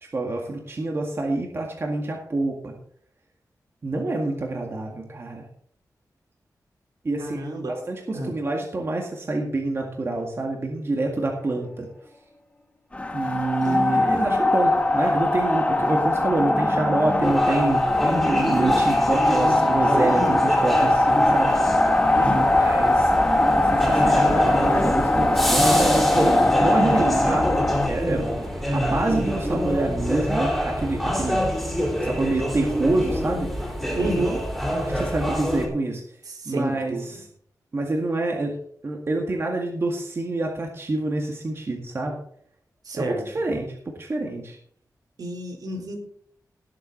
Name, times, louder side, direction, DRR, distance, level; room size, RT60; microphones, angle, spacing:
voice 1, 0.1-2.7 3.8-5.5 7.0-7.4 7.7-11.9 13.1-21.7 22.5-27.5 27.9-28.2 28.7-31.4 32.0-33.5 34.8-36.0 36.5-37.3 37.7-38.6 38.8-42.2 42.9-44.6, right 2 dB, 40° right, 0 dB, 1.9 m, -27 dB
voice 2, 7.2-7.8 8.1-8.3 13.6-13.8 22.1-22.6 33.9-34.5 36.3-37.2 42.8-43.3 45.2-46.0, right 2 dB, 80° right, 0 dB, 3.7 m, -30 dB
sound 1, 12.9-27.9, left 1 dB, 20° left, 1.5 m, -21 dB
sound 2, 17.2-35.7, equal, ahead, 3.7 m, -26 dB
18.0 x 7.7 x 4.0 m, 0.62 s
wide cardioid pair, 140°, 7 cm